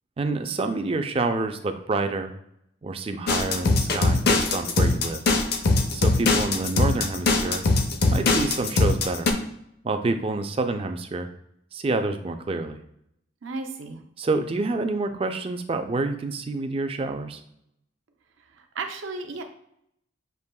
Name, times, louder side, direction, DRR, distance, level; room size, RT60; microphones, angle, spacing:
voice 1, 0.2-2.3 2.8-5.2 5.9-7.6 8.1-9.3 9.8-11.3 11.7-12.8 14.2-17.4, right 3 dB, 30° right, 7 dB, 0.3 m, -28 dB
sound 1, 3.3-9.3, left 3 dB, 50° left, 0.5 m, -21 dB
voice 2, 13.4-14.0 18.7-19.4, right 3 dB, 75° right, 5 dB, 0.6 m, -33 dB
6.8 x 2.9 x 2.2 m, 0.74 s
head